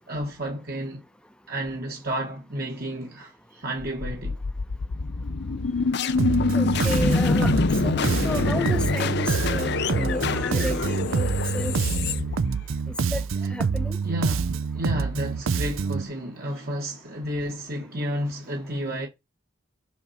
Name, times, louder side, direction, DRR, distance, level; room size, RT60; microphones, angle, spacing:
voice 1, 0.1-1.0 1.5-4.4 13.4-13.5 14.0-19.1, equal, 45° right, 1.5 m, -31 dB
sound 1, 3.8-12.9, left 4 dB, 50° left, 0.5 m, -26 dB
Bass guitar, 6.2-16.1, right 5 dB, 70° right, 0.5 m, -26 dB
voice 2, 6.6-7.5 7.8-8.0 8.2-11.7 13.1-13.2 13.5-14.0, equal, 5° left, 0.7 m, -32 dB
6.1 x 6.0 x 4.2 m
head